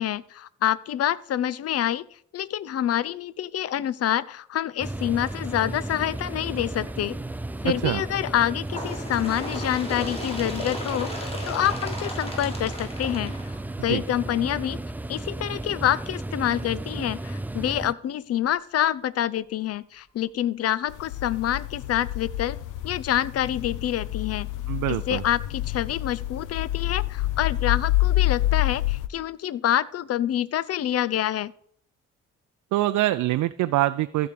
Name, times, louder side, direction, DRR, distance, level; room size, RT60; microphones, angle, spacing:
voice 1, 0.0-2.0 2.3-7.2 7.6-13.3 13.8-14.8 15.1-22.6 22.8-24.5 24.9-31.5, left 11 dB, 55° left, 20 dB, 0.6 m, -27 dB
sound 1, 4.8-17.9, right 2 dB, 5° right, 0.3 m, -34 dB
voice 2, 7.6-8.0 13.9-14.0 24.7-25.2 32.7-34.3, right 15 dB, 75° right, 11 dB, 0.5 m, -24 dB
Bird, 8.7-14.1 15.0-15.1 15.5-15.6 16.5-16.6 17.5-17.6 18.5-18.6, left 1 dB, 20° left, 3.9 m, -36 dB
sound 2, 20.9-29.1, left 16 dB, 85° left, 0.8 m, -27 dB
14.5 x 4.8 x 6.8 m, 0.63 s
cardioid pair, 90°, 30 cm